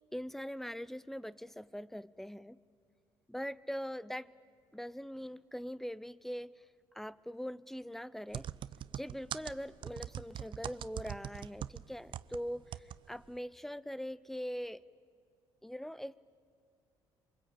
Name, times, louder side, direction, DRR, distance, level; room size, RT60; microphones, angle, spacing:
voice 1, 0.1-2.6 3.3-4.3 4.7-6.6 6.9-8.5 8.9-14.8 15.6-16.1, equal, 5° left, 19 dB, 0.6 m, -42 dB
sound 1, 8.3-12.4 12.7-13.0 13.2-13.3, right 10 dB, 55° right, 0.7 m, -42 dB
27.0 x 23.5 x 8.8 m, 2.4 s
cardioid pair, 95°, 10 cm